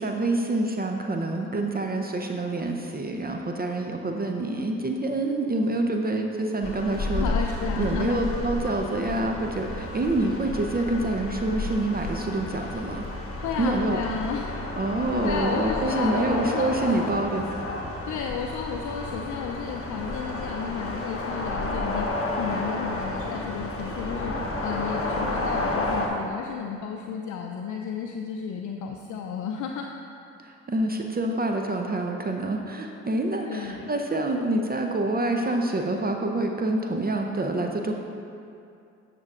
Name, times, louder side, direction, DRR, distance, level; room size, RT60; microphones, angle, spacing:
voice 1, 0.0-7.3 7.8-13.2 13.6-14.0 14.8-17.7 30.4-37.9, right 2 dB, 30° right, 3 dB, 0.6 m, -27 dB
sound 1, 6.6-26.1, left 2 dB, 40° left, 1.1 m, -31 dB
voice 2, 7.1-8.2 13.3-14.5 14.9-15.0 15.2-17.1 18.1-24.4 24.6-29.9 33.5-33.9, left 6 dB, 60° left, 2 dB, 0.5 m, -33 dB
9.3 x 6.7 x 2.5 m, 2.5 s
supercardioid pair, 55°, 33 cm